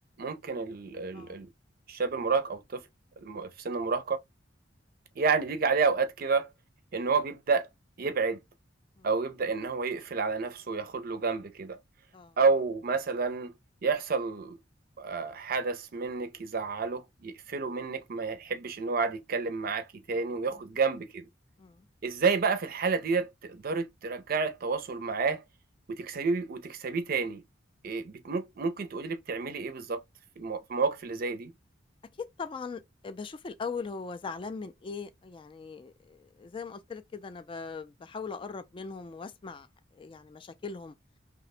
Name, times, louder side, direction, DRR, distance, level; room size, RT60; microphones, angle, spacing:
voice 1, 0.2-1.5 1.9-2.8 3.2-4.2 5.2-6.5 6.9-7.7 8.0-8.4 9.0-11.8 12.4-13.5 13.8-14.6 15.0-21.3 22.0-25.4 25.9-27.4 27.8-30.0 30.4-31.5, right 4 dB, 50° right, 0.5 m, -30 dB
voice 2, 32.2-39.7 39.9-40.9, left 4 dB, 30° left, 0.3 m, -40 dB
2.8 x 2.2 x 4.1 m
head